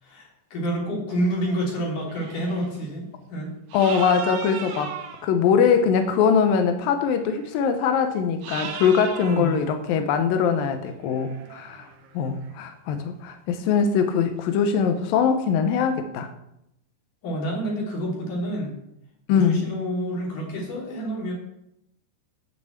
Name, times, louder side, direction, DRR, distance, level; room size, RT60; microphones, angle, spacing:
voice 1, 0.0-3.5 9.2-9.6 17.2-18.8 19.3-21.3, right 1 dB, 45° left, -2 dB, 4.5 m, -28 dB
sound 1, 1.1-1.7 2.0-2.8 3.7-5.3 7.0-7.6 8.4-9.7 10.9-12.6, right 7 dB, 75° right, 2.9 m, -38 dB
voice 2, 3.7-5.0 5.2-11.9 12.1-16.3 19.3-19.6, left 6 dB, 80° left, 7 dB, 2.0 m, -22 dB
11.5 x 6.0 x 8.0 m, 0.80 s
omnidirectional pair, 5.2 m